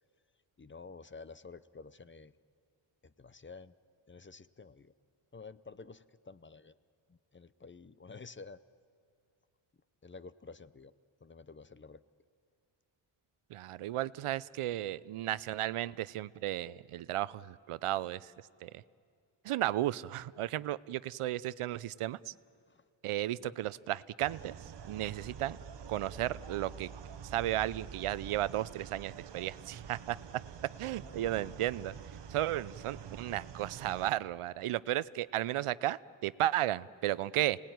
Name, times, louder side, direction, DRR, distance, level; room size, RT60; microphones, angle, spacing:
voice 1, 0.6-2.3 3.0-3.7 4.1-4.9 5.3-6.8 7.1-8.6 10.0-10.9 11.2-12.0 22.7-22.8 23.4-23.5 31.0-31.5, left 4 dB, 25° left, 15 dB, 0.6 m, -51 dB
voice 2, 13.5-18.3 18.6-18.7 19.4-22.3 23.0-24.5 24.9-25.6 25.9-26.9 27.3-30.2 30.8-31.9 32.3-37.6, right 14 dB, 90° right, 18 dB, 0.6 m, -34 dB
sound 1, 24.2-34.1, right 7 dB, 55° right, 1.0 m, -47 dB
29.5 x 19.0 x 9.3 m, 2.4 s
wide cardioid pair, 100°, 50 cm